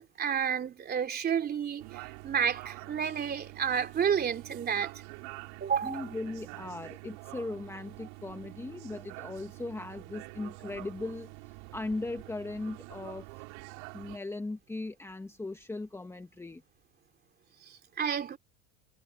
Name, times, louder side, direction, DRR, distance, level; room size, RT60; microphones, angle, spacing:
voice 1, 0.0-4.9 5.6-6.0 17.7-18.4, right 7 dB, 25° right, 3.1 m, -31 dB
sound 1, 1.8-14.2, right 29 dB, 65° right, 5.1 m, -46 dB
voice 2, 5.8-11.3 11.7-13.4 13.9-16.6, left 2 dB, 5° left, 1.5 m, -38 dB
supercardioid pair, 140°, 38 cm